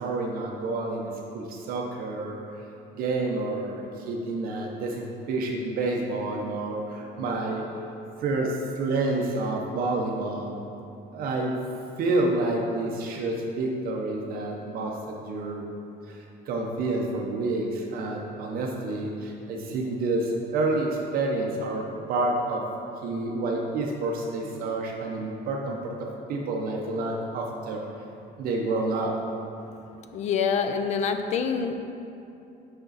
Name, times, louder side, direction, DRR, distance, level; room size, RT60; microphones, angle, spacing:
voice 1, 0.0-2.4 2.9-7.6 8.2-10.6 11.1-11.6 12.0-15.6 16.1-22.6 23.0-25.9 26.3-27.8 28.4-29.2, right 2 dB, 50° right, -1 dB, 0.7 m, -29 dB
voice 2, 30.1-31.8, left 6 dB, 40° left, 7 dB, 0.4 m, -26 dB
6.6 x 5.9 x 4.0 m, 2.8 s
cardioid pair, 180°, 19 cm